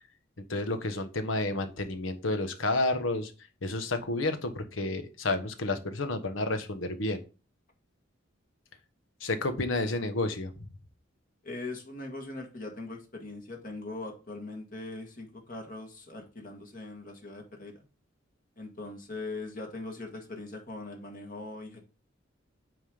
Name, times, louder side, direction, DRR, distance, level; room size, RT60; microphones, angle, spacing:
voice 1, 0.5-3.3 3.6-7.2 9.2-10.7, left 2 dB, 80° left, 8 dB, 1.3 m, -30 dB
voice 2, 11.4-17.8 18.6-21.8, left 2 dB, 45° left, 2 dB, 1.7 m, -41 dB
9.2 x 3.7 x 5.1 m, 0.33 s
head